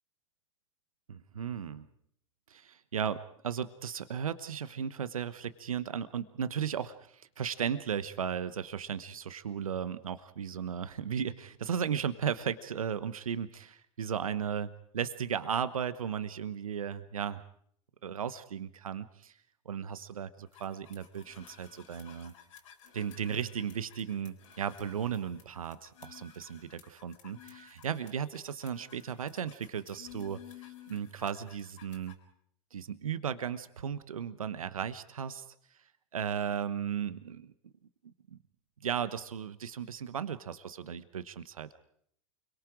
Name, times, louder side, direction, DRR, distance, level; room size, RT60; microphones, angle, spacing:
voice 1, 1.1-1.9 2.5-17.4 18.0-19.3 19.6-22.3 22.9-32.1 32.7-35.4 36.1-37.5 38.0-38.4 38.8-41.8, right 8 dB, 85° right, 14 dB, 1.1 m, -36 dB
sound 1, 20.5-32.1, left 9 dB, 70° left, 4.2 m, -54 dB
29.0 x 23.0 x 4.9 m, 0.66 s
hypercardioid pair, 95°, 17 cm